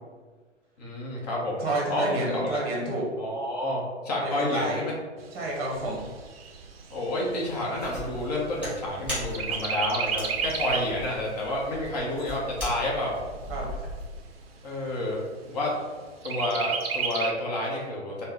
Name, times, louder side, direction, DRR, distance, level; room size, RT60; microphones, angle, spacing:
voice 1, 0.8-2.6 3.2-4.9 6.9-13.2 14.6-15.7 16.2-18.3, left 1 dB, 35° left, -3 dB, 0.8 m, -29 dB
voice 2, 1.6-3.0 4.2-4.8 5.3-6.1 13.5-13.7, right 2 dB, 30° right, -2 dB, 0.8 m, -30 dB
Chirp tweet, 5.2-8.9 9.3-11.0 11.4-11.5 11.9-12.9 13.5-13.6 13.9-14.0 14.5-15.0 16.2-17.3, right 6 dB, 55° right, 0.5 m, -32 dB
sound 1, 7.8-14.1, equal, 5° right, 1.2 m, -39 dB
3.2 x 2.1 x 3.5 m, 1.4 s
figure-of-eight pair, 120°, 36 cm